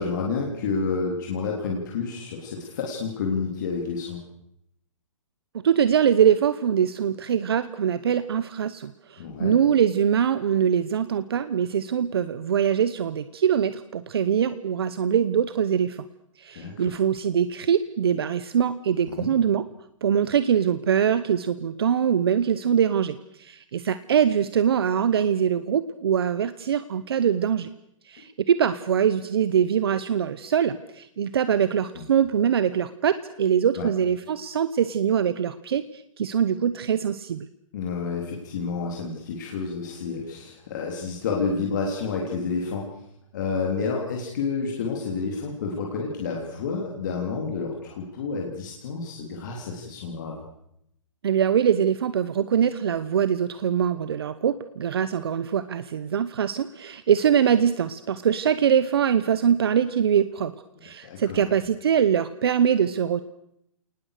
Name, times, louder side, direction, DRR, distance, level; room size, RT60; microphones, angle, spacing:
voice 1, 0.0-4.3 9.2-9.5 16.5-17.0 19.1-19.3 31.9-32.0 33.8-33.9 37.7-42.9 43.3-50.4 61.0-61.4, left 4 dB, 35° left, -1 dB, 3.4 m, -29 dB
voice 2, 5.5-16.0 16.4-19.6 20.0-27.7 28.1-37.5 51.2-60.5 60.8-63.2, right 8 dB, 50° right, 14 dB, 0.9 m, -23 dB
29.0 x 19.5 x 6.7 m, 0.76 s
hypercardioid pair, 175°, 17 cm